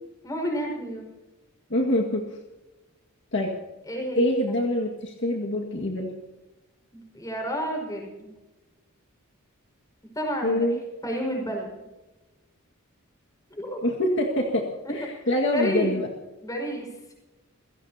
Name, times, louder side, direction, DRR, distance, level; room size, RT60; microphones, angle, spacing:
voice 1, 0.2-1.0 3.9-4.3 6.9-8.3 10.2-10.6 11.0-11.7 13.5-13.8 15.5-16.0 16.4-16.9, right 1 dB, 15° left, 1 dB, 5.4 m, -30 dB
voice 2, 1.7-2.4 3.3-3.5 4.2-6.1 10.4-10.8 13.8-16.1, left 1 dB, 55° left, 0 dB, 1.9 m, -25 dB
27.5 x 17.0 x 2.8 m, 1.1 s
head